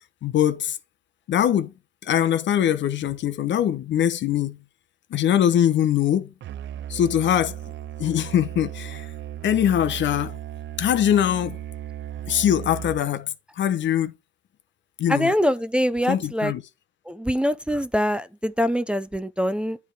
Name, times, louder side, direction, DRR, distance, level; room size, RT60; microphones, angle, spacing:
voice 1, 0.2-0.8 1.3-1.7 2.0-4.6 5.1-6.3 6.9-7.6 8.0-9.1 9.4-10.4 10.8-11.6 12.3-14.1 15.0-15.3 16.1-16.6, left 10 dB, 65° left, 0.9 m, -22 dB
Musical instrument, 6.4-13.2, right 11 dB, 65° right, 0.5 m, -36 dB
voice 2, 15.1-16.5 17.1-19.8, equal, 5° right, 0.5 m, -24 dB
9.7 x 3.5 x 4.7 m
cardioid pair, 90°, 20 cm